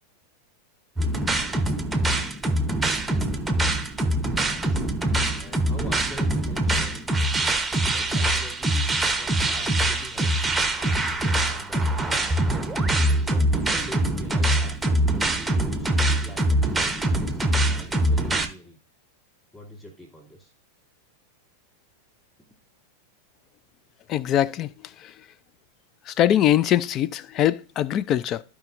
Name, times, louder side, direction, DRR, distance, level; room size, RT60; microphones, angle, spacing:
sound 1, 1.0-18.5, right 1 dB, 5° right, 0.9 m, -23 dB
voice 1, 4.4-5.0 5.3-7.6 7.9-8.9 9.1-10.5 10.8-12.3 13.1-18.8 19.5-20.5, equal, 10° left, 2.6 m, -44 dB
voice 2, 24.1-24.7 25.0-25.1 26.1-28.4, left 11 dB, 35° left, 0.4 m, -22 dB
14.5 x 5.0 x 2.6 m
figure-of-eight pair, 90°, 0 cm